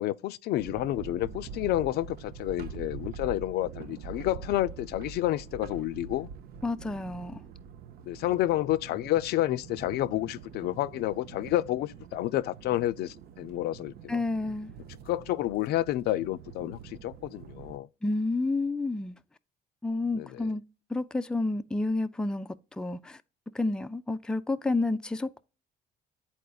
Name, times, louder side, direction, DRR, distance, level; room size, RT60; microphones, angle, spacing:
voice 1, 0.0-6.3 8.1-14.2 15.1-17.9 20.1-20.4, left 14 dB, 70° left, 0.4 m, -30 dB
sound 1, 0.6-17.8, right 7 dB, 65° right, 0.5 m, -45 dB
voice 2, 6.6-7.4 14.1-14.7 18.0-19.2 19.8-20.6 20.9-23.2 23.5-25.4, left 2 dB, 5° left, 0.4 m, -30 dB
10.5 x 4.2 x 2.3 m
cardioid pair, 110°, 17 cm